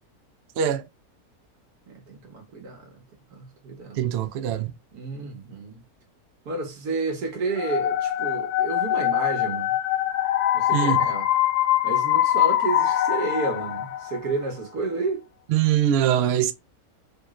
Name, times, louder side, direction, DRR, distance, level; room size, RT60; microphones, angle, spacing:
voice 1, 0.6-0.9 3.9-4.7 10.7-11.1 15.5-16.5, right 10 dB, 70° right, 0.6 m, -23 dB
voice 2, 1.9-3.0 3.3-4.0 4.9-5.8 6.4-9.7 10.5-11.3 11.8-15.3, right 3 dB, 90° right, 1.6 m, -31 dB
sound 1, 7.6-14.4, left 12 dB, 85° left, 1.1 m, -23 dB
3.6 x 3.1 x 2.4 m
omnidirectional pair, 1.6 m